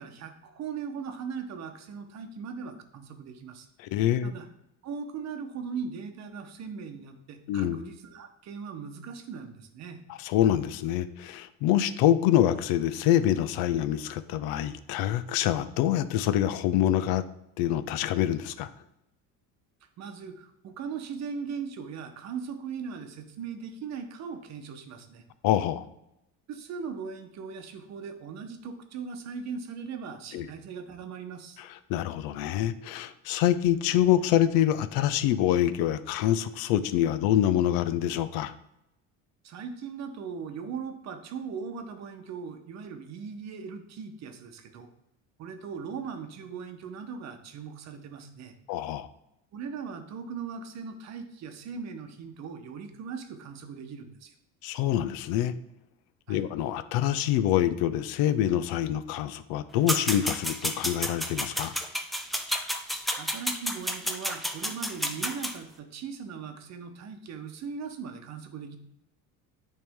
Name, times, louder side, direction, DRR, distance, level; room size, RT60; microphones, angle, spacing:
voice 1, 0.0-3.7 4.2-4.5 4.8-10.0 20.0-25.2 26.5-31.6 39.4-44.9 45.4-48.5 49.5-54.3 56.3-56.4 62.9-68.8, right 6 dB, 50° right, 7 dB, 0.9 m, -39 dB
voice 2, 3.8-4.3 7.5-7.8 10.2-17.2 17.6-18.7 25.4-25.9 30.3-30.5 31.9-38.5 48.7-49.1 54.6-55.5 56.3-61.7, left 11 dB, 80° left, 14 dB, 0.5 m, -26 dB
sound 1, 59.9-65.5, equal, ahead, 0.3 m, -31 dB
8.9 x 3.3 x 3.5 m, 0.84 s
cardioid pair, 135°, 36 cm